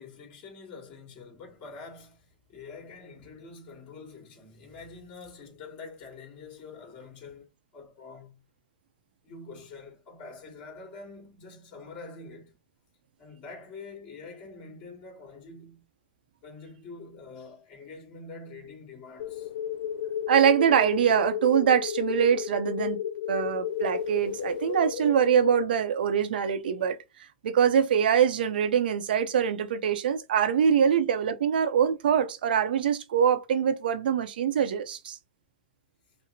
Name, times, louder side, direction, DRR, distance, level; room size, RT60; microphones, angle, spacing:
voice 1, 0.0-8.4 9.2-12.6 13.2-15.9 16.4-19.5, left 4 dB, 45° left, 2.2 m, -46 dB
sound 1, 19.2-25.6, left 9 dB, 80° left, 0.4 m, -33 dB
voice 2, 20.3-23.0 23.3-27.0 27.4-35.2, right 8 dB, 80° right, 0.7 m, -24 dB
5.9 x 2.1 x 2.7 m
hypercardioid pair, 130°, 5 cm